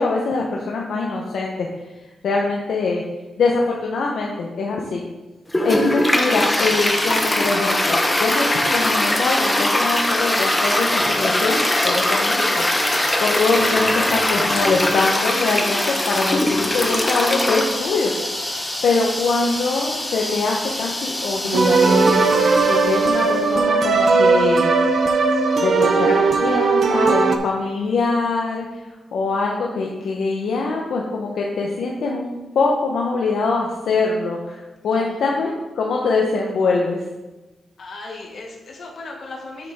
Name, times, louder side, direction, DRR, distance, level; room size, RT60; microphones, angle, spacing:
voice 1, 0.0-1.7 2.2-3.0 3.4-5.0 5.6-18.1 18.8-22.2 22.7-24.7 25.6-28.6 29.1-37.0, left 3 dB, 75° left, -1 dB, 0.9 m, -23 dB
Toilet flush, 5.5-23.4, left 1 dB, 15° left, 0.9 m, -22 dB
sound 1, 21.5-27.4, right 4 dB, 55° right, 0.7 m, -17 dB
voice 2, 34.9-35.4 37.8-39.7, left 3 dB, 55° left, -1 dB, 1.8 m, -37 dB
7.9 x 7.2 x 3.6 m, 1.1 s
wide cardioid pair, 130°, 0 cm